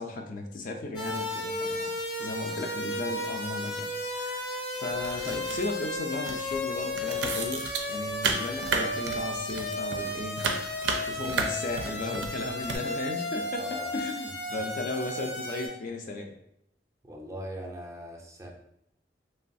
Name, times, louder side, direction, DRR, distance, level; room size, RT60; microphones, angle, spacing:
voice 1, 0.0-1.9 2.2-10.4 11.1-16.3, left 2 dB, 50° left, 3 dB, 0.4 m, -35 dB
sound 1, 0.9-15.7, left 2 dB, 75° left, 0.9 m, -34 dB
sound 2, 4.9-6.0 6.2-12.8, right 4 dB, 85° right, 0.4 m, -33 dB
voice 2, 13.6-13.9 14.5-14.6 17.0-18.5, equal, 15° right, -1 dB, 0.4 m, -41 dB
3.2 x 2.2 x 2.6 m, 0.75 s
head